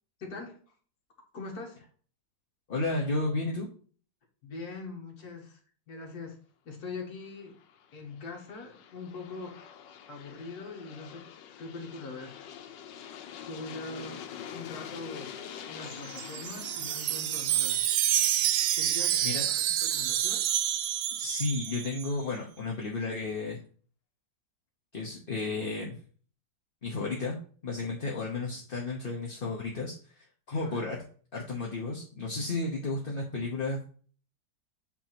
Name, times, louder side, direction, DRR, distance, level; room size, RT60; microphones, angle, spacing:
voice 1, 0.2-0.6 1.3-1.8 4.4-5.6 5.9-6.4 6.7-7.6 7.9-9.6 10.1-11.3 11.6-12.5 13.5-14.2 14.5-15.3 15.6-17.8 18.8-20.5 30.6-30.9, left 3 dB, 55° left, 0 dB, 2.2 m, -42 dB
voice 2, 2.7-3.7 19.2-19.5 21.2-23.6 24.9-26.0 26.8-27.4 27.6-31.0 31.3-33.9, left 3 dB, 35° left, -2 dB, 1.1 m, -33 dB
Aircraft, 7.4-20.2, left 8 dB, 80° left, 1.4 m, -46 dB
Wind chime, 15.9-22.1, right 12 dB, 75° right, 1.1 m, -28 dB
8.4 x 3.0 x 5.9 m, 0.43 s
omnidirectional pair, 1.9 m